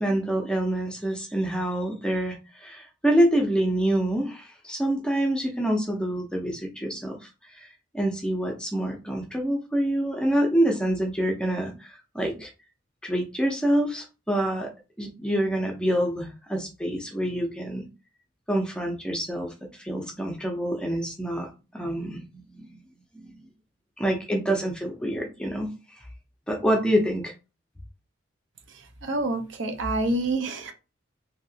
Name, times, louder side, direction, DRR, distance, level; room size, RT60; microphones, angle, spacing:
voice 1, 0.0-7.3 7.6-12.5 13.0-14.7 15.0-17.8 18.5-21.5 21.7-22.7 23.1-23.3 24.0-25.7 26.5-27.3, right 1 dB, 5° left, 0.5 m, -26 dB
voice 2, 28.7-30.7, right 2 dB, 70° right, 0.7 m, -28 dB
3.0 x 2.8 x 2.7 m
head